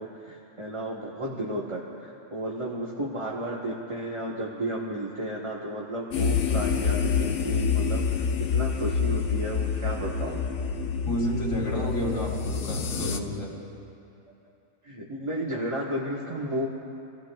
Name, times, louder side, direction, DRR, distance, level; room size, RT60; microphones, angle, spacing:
voice 1, 0.0-10.4 14.8-16.7, right 1 dB, 25° right, -4 dB, 1.1 m, -33 dB
sound 1, 6.1-13.2, left 6 dB, 85° left, 1.2 m, -27 dB
voice 2, 11.0-13.5, equal, 60° left, -4 dB, 3.1 m, -30 dB
29.5 x 16.5 x 2.3 m, 2.8 s
omnidirectional pair, 1.4 m